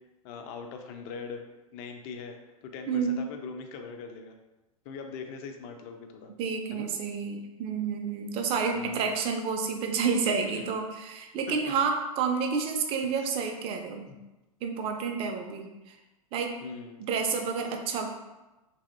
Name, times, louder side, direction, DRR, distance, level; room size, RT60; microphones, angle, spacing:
voice 1, 0.2-1.4 1.7-2.4 2.6-4.4 4.9-6.3 6.7-6.9 8.7-9.2 10.5-10.7 11.5-11.6 13.1-13.3 14.1-14.2 16.6-17.0, left 5 dB, 40° left, 5 dB, 0.4 m, -41 dB
voice 2, 2.9-3.2 6.4-14.1 14.6-16.0 16.3-16.6 17.0-18.1, right 5 dB, 30° right, 4 dB, 0.4 m, -29 dB
2.8 x 2.7 x 2.5 m, 1.1 s
hypercardioid pair, 100°, 19 cm